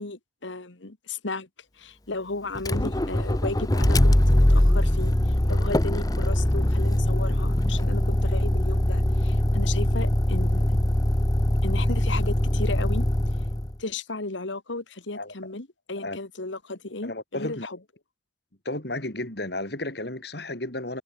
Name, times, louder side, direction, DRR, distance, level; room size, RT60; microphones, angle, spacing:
voice 1, 0.0-1.5 1.8-10.8 11.6-13.1 13.8-17.8, left 3 dB, 75° left, 1.9 m, -35 dB
Motor vehicle (road), 2.6-13.7, left 1 dB, 20° left, 0.9 m, -22 dB
voice 2, 17.0-17.7 18.6-21.0, left 2 dB, 55° left, 3.3 m, -33 dB
head